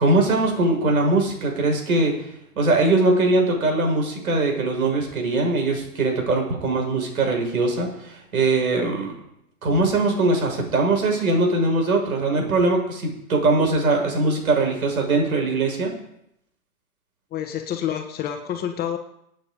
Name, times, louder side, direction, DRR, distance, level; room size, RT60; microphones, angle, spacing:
voice 1, 0.0-2.1 2.6-9.2 9.6-15.9, right 2 dB, 65° right, 1 dB, 6.7 m, -21 dB
voice 2, 17.3-19.0, left 9 dB, 20° left, 5 dB, 1.4 m, -28 dB
26.5 x 9.0 x 5.2 m, 0.77 s
figure-of-eight pair, 115°, 46 cm